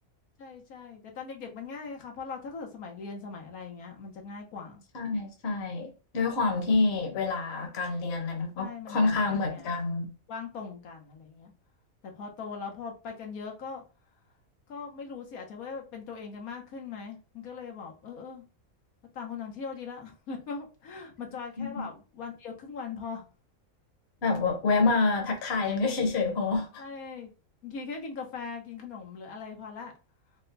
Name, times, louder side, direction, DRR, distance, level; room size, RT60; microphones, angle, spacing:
voice 1, 0.4-4.8 8.5-9.7 10.3-11.5 12.0-13.8 14.7-18.4 19.1-23.3 26.8-27.3 27.6-29.9, left 5 dB, 80° left, 1.4 m, -40 dB
voice 2, 4.9-10.1 21.6-21.9 24.2-26.8, left 3 dB, 50° left, 1.2 m, -27 dB
4.2 x 2.2 x 3.9 m
omnidirectional pair, 1.5 m